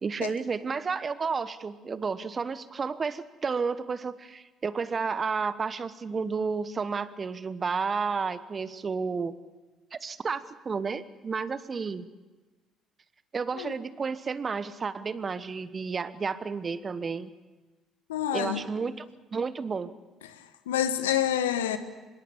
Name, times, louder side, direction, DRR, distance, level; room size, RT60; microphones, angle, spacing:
voice 1, 0.0-9.4 9.9-12.1 13.3-17.3 18.3-19.1 19.3-19.9, right 5 dB, 35° right, 15 dB, 1.2 m, -31 dB
voice 2, 18.1-18.6 20.3-21.8, left 10 dB, 80° left, 11 dB, 1.3 m, -28 dB
25.0 x 22.0 x 7.2 m, 1.2 s
figure-of-eight pair, 50°, 0 cm